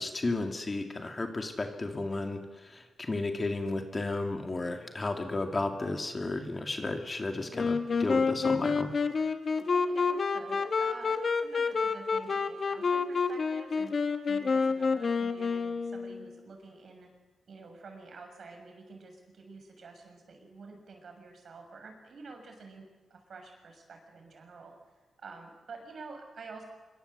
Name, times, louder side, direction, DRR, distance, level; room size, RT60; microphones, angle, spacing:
voice 1, 0.0-8.9, left 2 dB, 25° left, 4 dB, 2.5 m, -33 dB
Wind instrument woodwind instrument, 7.5-16.3, left 5 dB, 40° left, 1.8 m, -29 dB
voice 2, 9.7-13.9 14.3-17.1 17.5-24.7 25.2-26.6, right 3 dB, 50° right, 4 dB, 7.2 m, -49 dB
26.0 x 24.0 x 8.2 m, 1.3 s
wide cardioid pair, 125°, 0 cm